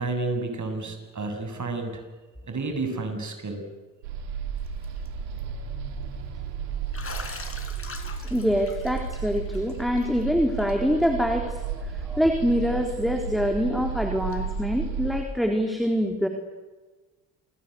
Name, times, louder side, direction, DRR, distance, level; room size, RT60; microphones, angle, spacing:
voice 1, 0.0-2.0 2.4-3.6, right 3 dB, 35° right, 6 dB, 7.4 m, -30 dB
sound 1, 4.0-15.2, right 6 dB, 85° right, 3.1 m, -33 dB
Bathtub (filling or washing), 4.7-5.1 5.4-5.5 6.9-10.2 10.6-10.7 11.0-11.1 12.5-12.6 14.3-14.4, left 3 dB, 25° left, 4.9 m, -42 dB
voice 2, 8.2-16.3, equal, ahead, 3 dB, 3.8 m, -25 dB
28.0 x 24.5 x 8.2 m, 1.2 s
hypercardioid pair, 50°, 49 cm